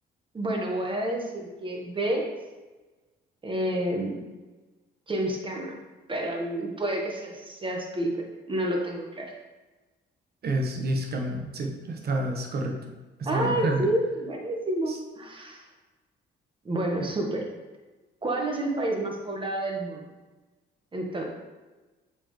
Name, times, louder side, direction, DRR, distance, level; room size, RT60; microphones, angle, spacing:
voice 1, 0.3-2.2 3.4-4.2 5.1-5.8 6.1-8.2 8.5-9.3 13.2-15.6 16.6-17.4 18.2-20.1 20.9-21.2, right 1 dB, 25° right, 0 dB, 1.4 m, -29 dB
voice 2, 10.4-12.8 13.2-13.9 14.9-15.0, right 1 dB, 55° right, 2 dB, 1.1 m, -29 dB
7.5 x 4.5 x 3.2 m, 1.2 s
cardioid pair, 90°, 20 cm